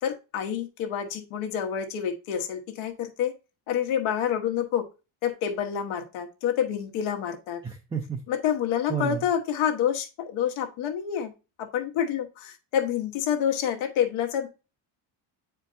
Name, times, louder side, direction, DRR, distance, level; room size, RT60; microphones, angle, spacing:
voice 1, 0.0-3.3 3.7-4.9 5.2-7.6 8.3-11.3 11.6-14.5, left 9 dB, 80° left, 5 dB, 1.3 m, -28 dB
voice 2, 7.6-8.2 8.9-9.3, right 6 dB, 10° right, 3 dB, 0.4 m, -31 dB
8.6 x 4.4 x 2.6 m, 0.30 s
cardioid pair, 145°, 47 cm